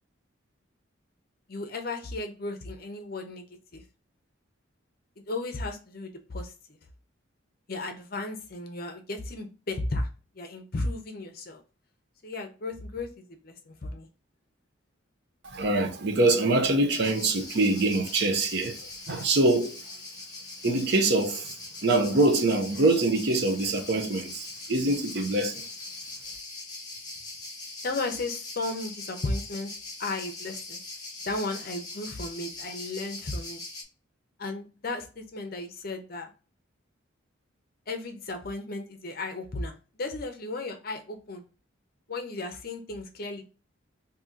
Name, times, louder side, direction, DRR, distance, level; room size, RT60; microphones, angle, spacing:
voice 1, 1.5-3.5 3.7-3.8 5.3-6.8 7.7-10.1 10.3-11.6 12.2-14.1 27.8-29.7 30.0-30.8 31.3-33.6 34.4-36.3 37.9-41.4 42.1-43.4, left 2 dB, 45° left, 0.6 m, -34 dB
voice 2, 15.4-18.8 19.1-19.8 20.6-21.5 21.8-25.7, right 2 dB, 55° right, 0.6 m, -24 dB
sound 1, 16.9-33.8, left 2 dB, 20° left, 0.8 m, -41 dB
2.7 x 2.7 x 3.6 m
head